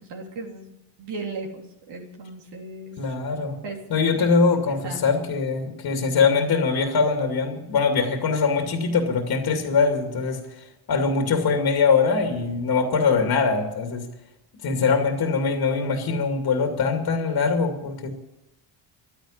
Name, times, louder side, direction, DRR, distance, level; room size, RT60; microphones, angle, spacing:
voice 1, 0.1-0.7 1.0-3.2 3.6-3.8 4.2-5.0 12.3-12.4, right 3 dB, 60° right, -1 dB, 3.3 m, -37 dB
voice 2, 3.0-3.6 3.9-14.1 14.6-18.1, left 5 dB, 50° left, 4 dB, 2.4 m, -22 dB
12.0 x 10.0 x 10.0 m, 0.91 s
supercardioid pair, 80°, 46 cm